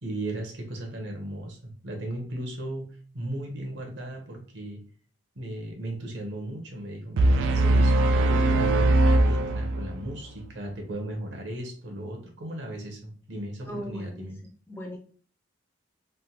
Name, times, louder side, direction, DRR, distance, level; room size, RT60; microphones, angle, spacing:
voice 1, 0.0-4.8 5.3-14.4, right 1 dB, 65° right, 2 dB, 0.9 m, -36 dB
sound 1, 7.2-10.1, right 2 dB, 80° right, 0.3 m, -21 dB
voice 2, 13.7-14.3 14.7-15.0, equal, 10° left, 0 dB, 0.4 m, -38 dB
3.4 x 2.1 x 2.8 m, 0.43 s
head